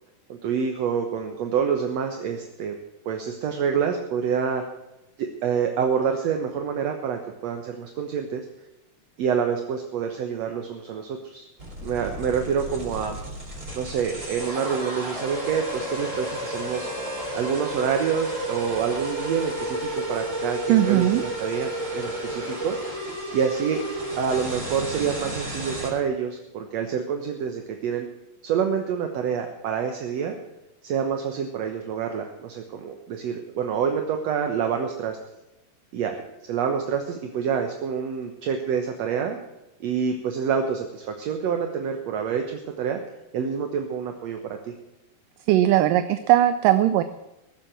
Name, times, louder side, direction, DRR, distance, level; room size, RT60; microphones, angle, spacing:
voice 1, 0.3-2.8 3.1-4.6 5.2-8.5 9.2-11.5 11.8-13.2 13.8-16.9 17.3-22.8 23.3-23.8 24.2-28.1 28.4-30.4 30.8-35.2 35.9-39.4 39.8-43.0 43.3-44.7, right 7 dB, 60° right, 5 dB, 1.9 m, -27 dB
sound 1, 11.6-25.9, right 1 dB, 20° right, 4.2 m, -32 dB
voice 2, 20.7-21.2 45.5-47.0, right 13 dB, 80° right, 11 dB, 2.1 m, -19 dB
21.0 x 7.5 x 7.5 m, 0.95 s
omnidirectional pair, 4.1 m